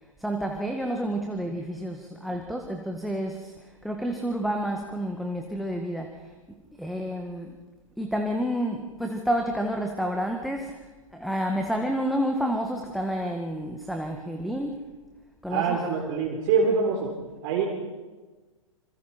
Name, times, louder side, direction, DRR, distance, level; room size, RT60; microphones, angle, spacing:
voice 1, 0.2-6.3 6.8-7.6 8.0-10.8 11.1-14.8 15.4-15.8, equal, ahead, 2 dB, 1.8 m, -29 dB
voice 2, 15.5-17.1 17.4-17.7, right 5 dB, 40° right, -1 dB, 4.0 m, -24 dB
27.0 x 26.0 x 4.5 m, 1.3 s
figure-of-eight pair, 110°, 17 cm